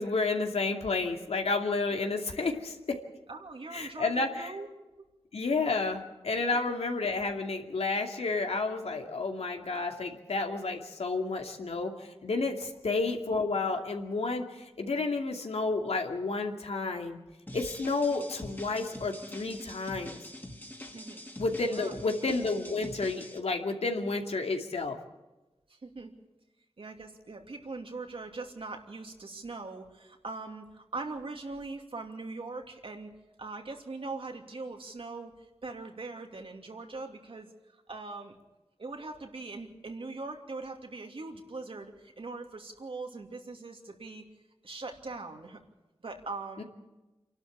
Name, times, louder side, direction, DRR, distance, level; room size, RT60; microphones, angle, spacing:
voice 1, 0.0-3.0 3.7-4.5 5.3-17.2 17.5-20.2 21.4-25.0 46.6-46.7, left 3 dB, 85° left, 3 dB, 2.6 m, -31 dB
voice 2, 3.3-4.7 6.5-6.6 20.9-21.2 21.6-22.1 25.7-26.1 26.8-33.1 33.4-38.3 38.8-44.2 44.6-45.6 46.0-46.6, right 3 dB, 60° right, 3 dB, 2.8 m, -41 dB
sound 1, 17.5-23.4, left 1 dB, 20° left, 2.9 m, -45 dB
27.5 x 12.0 x 8.6 m, 1.1 s
wide cardioid pair, 80°, 10 cm